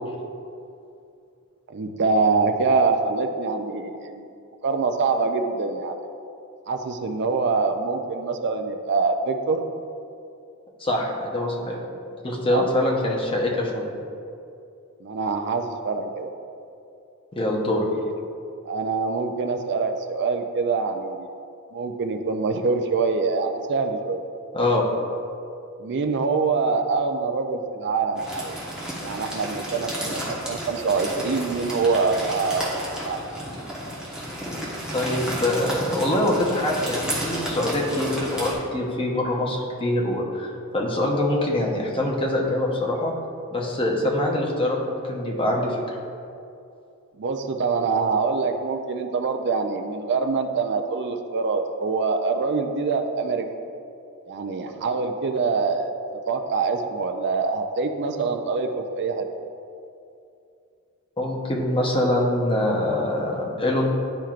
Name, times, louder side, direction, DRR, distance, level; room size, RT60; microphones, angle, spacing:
voice 1, 1.7-4.3 4.6-6.0 6.7-9.6 12.5-12.7 15.0-16.3 17.9-18.1 18.7-21.3 21.7-24.2 25.8-28.6 29.0-32.7 33.0-33.2 47.2-53.5 54.3-55.9 56.3-59.2, right 4 dB, 55° right, 5 dB, 0.5 m, -25 dB
voice 2, 10.8-11.8 12.2-13.9 17.3-17.8 24.5-24.8 34.9-43.1 43.5-45.8 61.2-63.9, left 1 dB, 25° left, -1 dB, 0.8 m, -24 dB
sound 1, 28.2-38.5, equal, 5° right, 1.2 m, -32 dB
10.5 x 4.4 x 2.5 m, 2.6 s
head